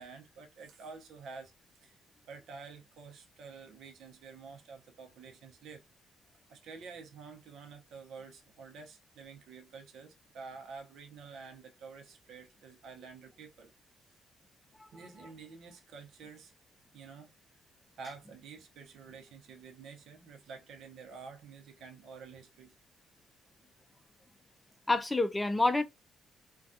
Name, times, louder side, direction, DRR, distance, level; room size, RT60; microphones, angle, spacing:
voice 1, 0.0-1.5 1.8-2.0 2.3-5.8 6.5-13.7 14.1-14.2 14.9-16.5 16.9-17.3 18.0-22.7, right 5 dB, 75° right, 0.7 m, -49 dB
voice 2, 24.9-25.8, left 2 dB, 15° left, 0.4 m, -27 dB
2.3 x 2.3 x 2.6 m
cardioid pair, 90°, 0 cm